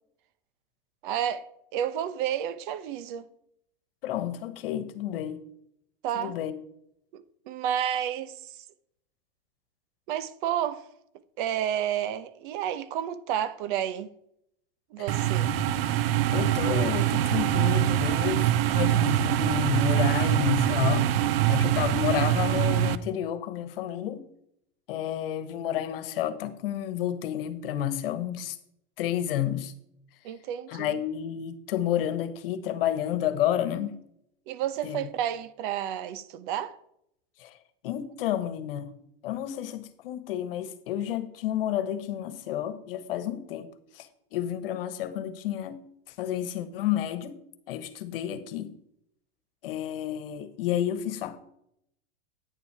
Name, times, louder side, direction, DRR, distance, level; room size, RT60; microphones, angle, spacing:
voice 1, 1.0-3.3 6.0-6.3 7.1-8.5 10.1-10.8 11.4-14.1 14.9-15.5 30.2-30.9 34.5-36.8, right 10 dB, 60° right, 1.0 m, -31 dB
voice 2, 4.0-5.4 6.1-6.5 15.0-15.3 16.3-21.1 21.5-24.2 24.9-28.6 29.0-29.7 30.7-34.0 34.8-35.1 37.4-37.6 37.8-38.9 39.2-45.8 46.1-47.3 47.7-48.7 49.6-51.4, left 11 dB, 70° left, 1.3 m, -30 dB
sound 1, 15.1-23.0, right 12 dB, 80° right, 0.8 m, -24 dB
9.7 x 7.1 x 4.8 m
supercardioid pair, 135°, 29 cm